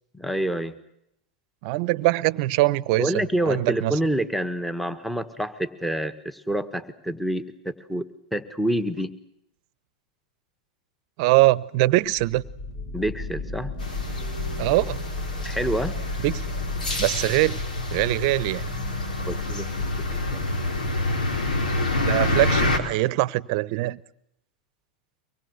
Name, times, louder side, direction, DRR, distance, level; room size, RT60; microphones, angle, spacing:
voice 1, 0.1-0.7 3.0-8.0 8.3-9.1 12.9-13.7 15.4-16.0 19.3-19.7 20.3-20.5, right 1 dB, ahead, 1.6 m, -27 dB
voice 2, 1.6-3.1 3.5-4.0 11.2-12.4 14.6-15.0 16.2-16.4 17.0-17.6 17.9-18.7 22.0-24.0, right 19 dB, 55° right, 0.9 m, -22 dB
sound 1, 12.0-22.7, left 3 dB, 55° left, 7.6 m, -36 dB
sound 2, 13.8-22.8, left 2 dB, 85° left, 3.9 m, -27 dB
24.5 x 21.0 x 8.1 m
hypercardioid pair, 105°, 4 cm